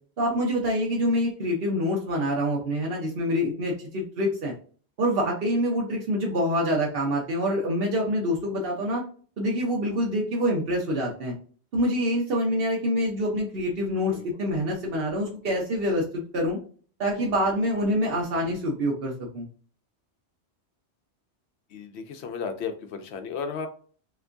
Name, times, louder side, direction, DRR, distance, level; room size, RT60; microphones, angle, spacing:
voice 1, 0.2-4.5 5.0-9.0 9.4-11.3 11.7-16.6 17.0-19.5, equal, 60° right, -3 dB, 1.0 m, -26 dB
voice 2, 21.7-23.7, left 6 dB, 75° left, 6 dB, 0.9 m, -34 dB
3.4 x 2.9 x 2.5 m, 0.42 s
omnidirectional pair, 1.1 m